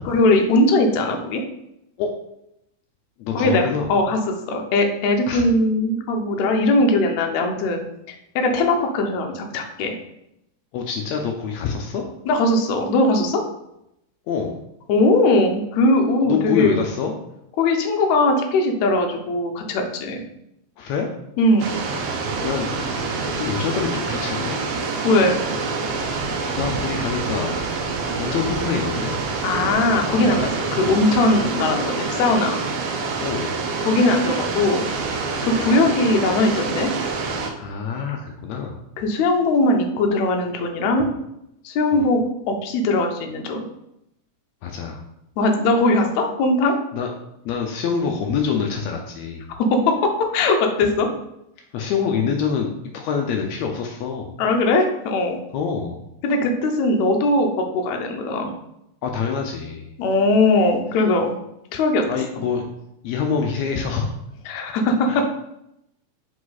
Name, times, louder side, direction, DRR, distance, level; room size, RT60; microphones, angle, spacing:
voice 1, 0.1-1.4 3.3-3.6 3.9-7.8 8.1-10.0 12.3-13.4 14.9-16.8 17.6-20.2 21.4-21.6 25.0-25.4 29.4-32.6 33.8-34.9 35.4-36.9 39.0-41.1 41.6-43.7 45.4-46.8 49.5-51.1 54.4-55.4 56.2-58.5 60.0-61.4 61.7-62.1 64.5-65.2, left 2 dB, 70° left, 3 dB, 1.9 m, -20 dB
voice 2, 3.2-3.9 5.3-5.5 10.7-12.0 14.3-14.6 16.3-17.1 20.8-21.1 22.4-22.8 23.3-24.6 26.5-27.5 28.2-29.1 33.2-33.6 37.5-38.8 41.9-42.1 44.6-45.0 46.9-47.1 47.4-49.5 51.7-54.3 55.5-56.0 59.0-59.9 62.1-62.6 63.0-64.1 65.1-65.2, left 6 dB, 90° left, 2 dB, 1.5 m, -25 dB
sound 1, 21.6-37.5, right 4 dB, 90° right, 1.3 m, -26 dB
5.0 x 4.9 x 4.0 m, 0.81 s
omnidirectional pair, 3.8 m